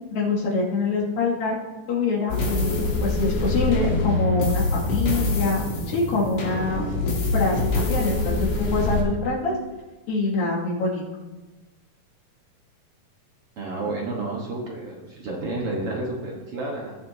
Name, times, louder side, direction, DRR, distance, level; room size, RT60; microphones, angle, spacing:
voice 1, 0.1-1.6 1.9-6.9 7.3-9.5 10.1-11.0, left 3 dB, 85° left, -5 dB, 4.1 m, -25 dB
Industrial Creep, 2.3-9.0, left 2 dB, 70° left, 3.8 m, -24 dB
voice 2, 13.6-17.0, right 2 dB, 55° right, -2 dB, 1.9 m, -30 dB
19.0 x 7.4 x 2.8 m, 1.1 s
omnidirectional pair, 3.9 m